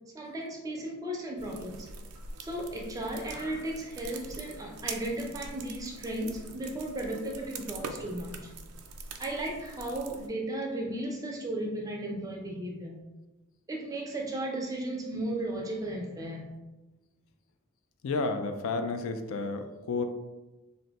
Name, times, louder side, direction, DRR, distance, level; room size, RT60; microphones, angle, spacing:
voice 1, 0.1-1.9 2.4-8.5 9.2-13.0 13.7-16.5, right 1 dB, 15° right, 0 dB, 0.4 m, -35 dB
sound 1, 1.4-10.3, right 4 dB, 85° right, 0.4 m, -44 dB
voice 2, 18.0-20.0, left 3 dB, 65° left, 7 dB, 0.3 m, -31 dB
2.6 x 2.1 x 3.9 m, 1.1 s
head